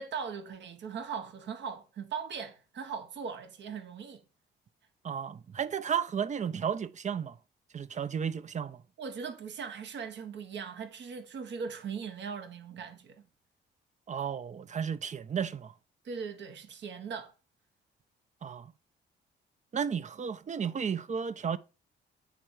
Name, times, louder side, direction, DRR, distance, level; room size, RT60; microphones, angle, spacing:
voice 1, 0.0-4.2 9.0-13.2 16.0-17.3, right 6 dB, 65° right, 1.5 m, -39 dB
voice 2, 5.0-7.4 7.7-8.8 14.1-15.7 18.4-18.7 19.7-21.6, right 7 dB, 35° right, 0.6 m, -33 dB
9.2 x 4.4 x 4.9 m
cardioid pair, 90°, 20 cm